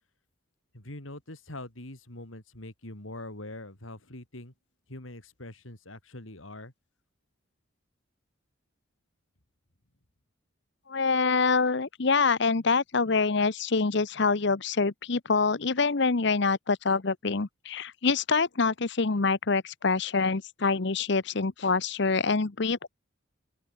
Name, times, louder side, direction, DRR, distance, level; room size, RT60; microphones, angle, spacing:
voice 1, 0.7-4.5 4.9-6.7, left 1 dB, 80° left, 4.7 m, -43 dB
voice 2, 10.9-22.9, left 4 dB, 60° left, 0.9 m, -26 dB
open air
head